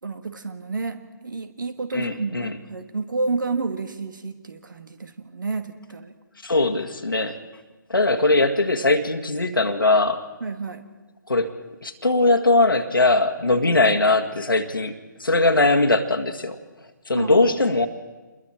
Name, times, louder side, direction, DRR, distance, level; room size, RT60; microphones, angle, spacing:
voice 1, 0.0-6.1 10.4-10.9 17.1-17.5, right 3 dB, 65° right, 9 dB, 1.9 m, -30 dB
voice 2, 1.9-2.6 6.4-7.4 7.9-10.2 11.3-11.5 11.8-14.9 15.2-16.6 17.1-17.9, left 2 dB, 85° left, 4 dB, 1.8 m, -20 dB
28.0 x 21.5 x 4.4 m, 1.2 s
figure-of-eight pair, 145°, 11 cm